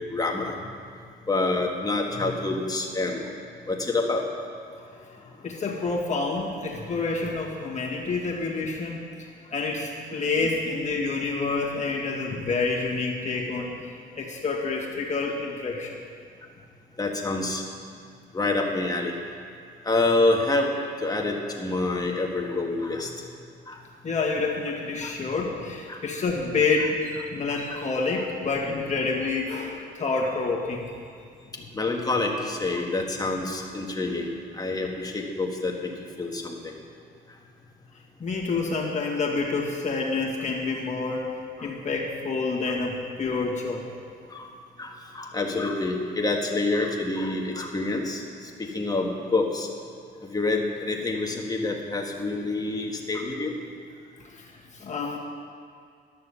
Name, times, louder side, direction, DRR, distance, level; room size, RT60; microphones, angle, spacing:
voice 1, 0.1-0.5 1.3-3.3 3.7-4.2 17.0-17.6 18.3-19.2 19.8-20.7 21.0-23.1 23.7-23.8 25.0-25.1 25.9-26.0 27.5-27.8 31.7-35.9 36.2-36.7 41.6-41.7 44.3-44.5 44.8-49.7 50.2-53.5, left 2 dB, 20° left, 1 dB, 1.6 m, -27 dB
voice 2, 4.8-9.0 9.5-13.8 14.1-16.0 24.0-30.9 38.2-41.3 41.6-43.9 54.2-54.4 54.7-55.2, left 3 dB, 35° left, -2 dB, 2.1 m, -28 dB
11.5 x 6.8 x 6.9 m, 2.2 s
cardioid pair, 90°, 20 cm